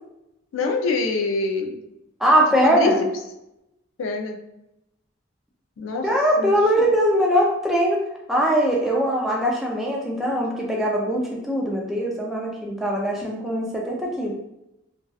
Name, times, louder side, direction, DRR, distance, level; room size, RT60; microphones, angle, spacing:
voice 1, 0.5-1.8 2.6-3.1 4.0-4.4 5.8-6.1 6.4-6.9, left 3 dB, 90° left, 5 dB, 0.4 m, -25 dB
voice 2, 2.2-3.0 6.0-8.0 8.3-14.4, equal, ahead, -2 dB, 0.3 m, -21 dB
2.6 x 2.2 x 2.2 m, 0.87 s
head